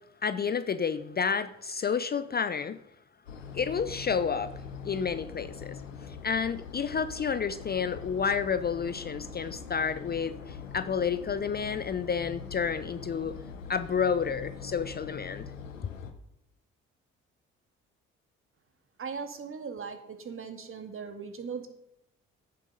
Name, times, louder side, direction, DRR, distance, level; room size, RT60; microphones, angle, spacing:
voice 1, 0.2-2.8 3.5-4.5 4.8-13.3 13.7-15.5, left 6 dB, 25° left, 0.6 m, -30 dB
sound 1, 3.3-16.1, left 6 dB, 80° left, 1.0 m, -43 dB
voice 2, 19.0-21.7, right 5 dB, 35° right, 1.9 m, -39 dB
15.5 x 7.4 x 5.3 m
figure-of-eight pair, 45°, 38 cm